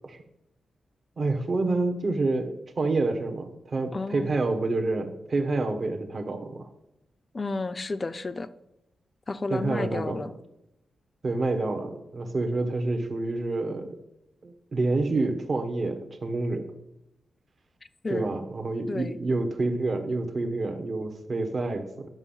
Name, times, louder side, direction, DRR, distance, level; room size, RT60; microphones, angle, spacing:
voice 1, 1.2-6.7 9.5-10.2 11.2-13.9 14.4-16.6 18.1-22.1, right 2 dB, 45° right, 6 dB, 1.3 m, -28 dB
voice 2, 3.9-4.3 7.3-8.5 9.3-10.3 18.0-18.4 18.9-19.2, left 3 dB, 30° left, 12 dB, 0.5 m, -31 dB
11.0 x 6.2 x 5.7 m, 0.86 s
wide cardioid pair, 115°, 0 cm